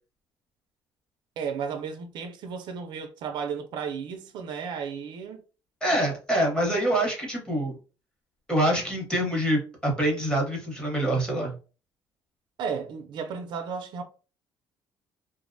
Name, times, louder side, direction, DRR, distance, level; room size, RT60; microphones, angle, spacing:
voice 1, 1.4-5.4 12.6-14.0, right 6 dB, 60° right, 0.4 m, -34 dB
voice 2, 5.8-7.8 8.5-11.5, right 1 dB, 10° left, 0.8 m, -25 dB
2.4 x 2.0 x 2.5 m
cardioid pair, 160°, 9 cm